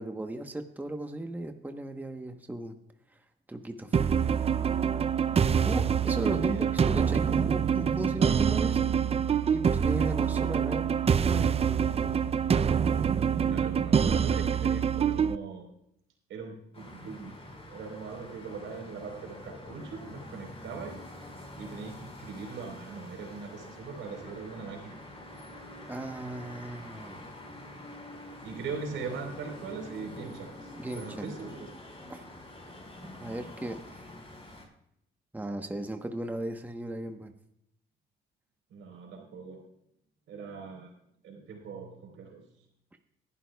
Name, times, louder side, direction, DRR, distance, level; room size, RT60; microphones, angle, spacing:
voice 1, 0.0-2.8 3.5-4.1 5.6-8.9 9.5-10.9 11.2-12.2 25.9-27.2 30.8-31.3 32.1-32.2 33.2-34.1 35.3-37.3, right 1 dB, 10° right, 5 dB, 1.0 m, -36 dB
sound 1, 3.9-15.3, right 7 dB, 30° right, 0.4 m, -25 dB
voice 2, 6.2-6.7 13.3-15.7 16.3-17.3 17.7-21.0 21.6-25.0 28.4-31.6 38.7-39.6 40.3-40.9 41.2-42.4, right 5 dB, 80° right, 2 dB, 4.0 m, -40 dB
sound 2, 16.7-34.6, left 1 dB, 30° left, 4.2 m, -46 dB
20.5 x 11.0 x 2.3 m, 0.76 s
cardioid pair, 90°, 20 cm